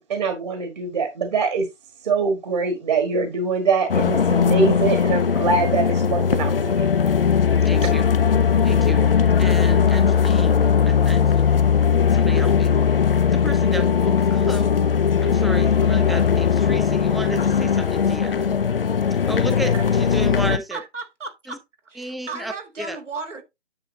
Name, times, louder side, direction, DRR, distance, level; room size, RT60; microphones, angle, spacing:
voice 1, 0.0-1.7 2.0-6.9, right 4 dB, 35° right, 1.5 m, -23 dB
sound 1, 3.9-20.6, left 7 dB, 50° left, 0.6 m, -19 dB
voice 2, 7.6-8.0 8.6-9.0 9.4-11.5 12.1-12.7 13.3-18.5 19.3-20.8 21.5-21.6 22.0-23.0, right 1 dB, ahead, 0.4 m, -32 dB
voice 3, 20.7-21.6 21.9-23.4, right 4 dB, 80° right, 2.9 m, -35 dB
9.6 x 7.7 x 2.7 m
hypercardioid pair, 165°, 36 cm